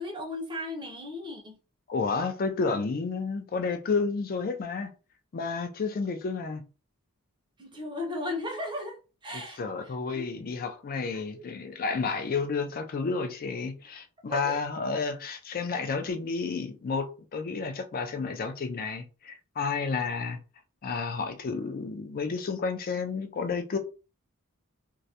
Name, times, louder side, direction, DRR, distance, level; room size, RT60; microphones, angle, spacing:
voice 1, 0.0-1.6 7.6-10.2 11.1-11.5 14.3-14.6, left 1 dB, 20° right, 0.6 m, -36 dB
voice 2, 1.9-4.9 5.3-6.6 9.6-20.4 20.8-23.8, left 4 dB, 40° left, 0.4 m, -31 dB
2.3 x 2.0 x 2.7 m
head